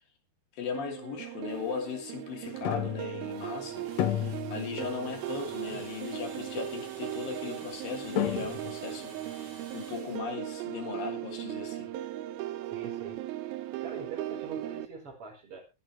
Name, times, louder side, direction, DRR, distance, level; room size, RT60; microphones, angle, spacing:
voice 1, 0.5-11.9, left 6 dB, 60° left, 4.5 m, -38 dB
sound 1, 0.7-14.9, right 14 dB, 75° right, 2.4 m, -38 dB
sound 2, 1.5-10.2, right 4 dB, 60° right, 4.9 m, -51 dB
sound 3, 2.6-3.6 4.0-5.2 5.5-5.6 6.6-6.7 7.7-7.8 8.2-8.9, left 11 dB, 90° left, 1.5 m, -32 dB
voice 2, 4.7-5.1 5.7-5.8 12.6-13.2 13.8-15.6, right 5 dB, 35° right, 5.1 m, -43 dB
23.0 x 8.9 x 3.2 m
omnidirectional pair, 4.8 m